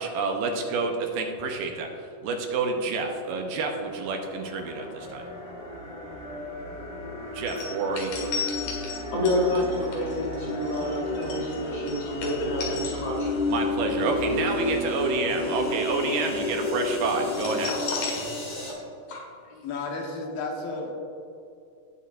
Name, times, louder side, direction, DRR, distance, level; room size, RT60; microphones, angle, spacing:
voice 1, 0.0-5.2 7.3-8.3 13.5-17.8, right 4 dB, 75° right, 3 dB, 2.4 m, -29 dB
sound 1, 3.8-18.7, left 2 dB, 25° left, 1.7 m, -32 dB
sound 2, 7.5-13.6 13.9-14.1 17.3-18.8 19.1-19.2, left 5 dB, 60° left, 3.1 m, -35 dB
voice 2, 9.1-13.3, left 1 dB, 45° left, -4 dB, 3.3 m, -28 dB
voice 3, 19.4-20.9, left 3 dB, 80° left, 0 dB, 3.1 m, -33 dB
17.5 x 7.2 x 2.5 m, 2.6 s
omnidirectional pair, 4.2 m